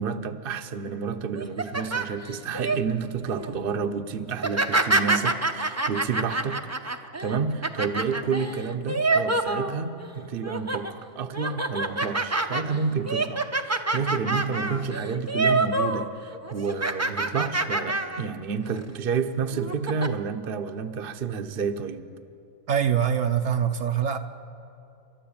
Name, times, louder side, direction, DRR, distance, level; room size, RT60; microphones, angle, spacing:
voice 1, 0.0-6.7 7.2-22.0, right 5 dB, 45° right, 8 dB, 1.0 m, -30 dB
sound 1, 1.3-2.8 3.3-3.6 4.3-10.1 10.4-10.9 11.3-16.0 16.3-18.2 18.6-18.8 19.5-20.1, right 2 dB, 15° right, 0.7 m, -27 dB
voice 2, 22.7-24.2, right 8 dB, 65° right, 6 dB, 1.1 m, -24 dB
30.0 x 13.0 x 8.8 m, 2.8 s
omnidirectional pair, 1.5 m